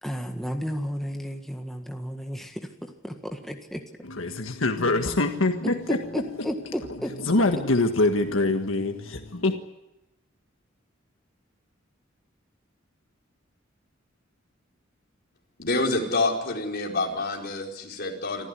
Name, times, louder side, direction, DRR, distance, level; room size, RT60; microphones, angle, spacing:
voice 1, 0.0-2.6 3.0-3.8 6.1-7.1, equal, ahead, 1.7 m, -32 dB
voice 2, 4.0-9.6, left 2 dB, 85° left, 1.6 m, -25 dB
voice 3, 15.6-18.5, left 2 dB, 55° left, 4.8 m, -27 dB
26.0 x 14.5 x 9.7 m
head